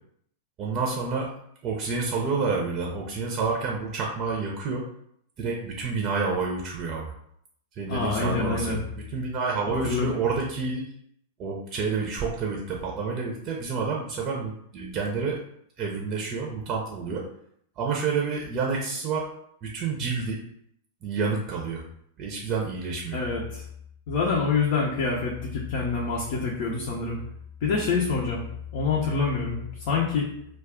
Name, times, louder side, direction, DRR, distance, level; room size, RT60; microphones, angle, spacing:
voice 1, 0.6-1.3 1.6-4.9 5.4-7.1 7.8-10.9 11.4-15.5 15.8-17.2 17.8-19.3 19.6-20.4 21.0-21.8 22.2-23.2, right 4 dB, 35° right, -1 dB, 0.6 m, -29 dB
voice 2, 7.9-8.8 9.8-10.1 23.1-23.6 24.1-27.2 27.6-28.5 28.7-30.3, left 4 dB, 55° left, -3 dB, 0.6 m, -26 dB
2.3 x 2.3 x 3.5 m, 0.70 s
hypercardioid pair, 95°, 0 cm